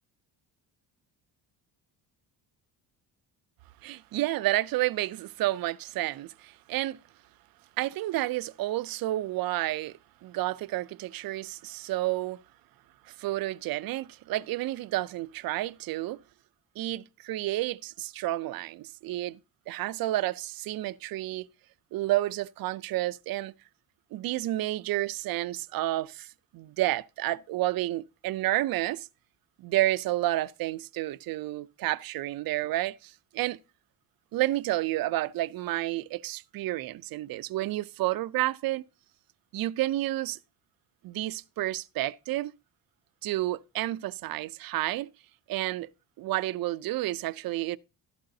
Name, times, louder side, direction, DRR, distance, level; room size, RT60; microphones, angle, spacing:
voice 1, 3.8-7.0 7.8-12.4 13.2-16.2 16.8-19.4 19.7-21.5 21.9-23.5 24.1-26.3 26.5-29.1 29.6-33.6 34.3-38.8 39.5-40.4 41.0-42.5 43.2-45.1 45.5-45.9 46.2-47.8, right 16 dB, 55° right, 0.5 m, -30 dB
12.5 x 11.5 x 2.7 m
cardioid pair, 165°, 42 cm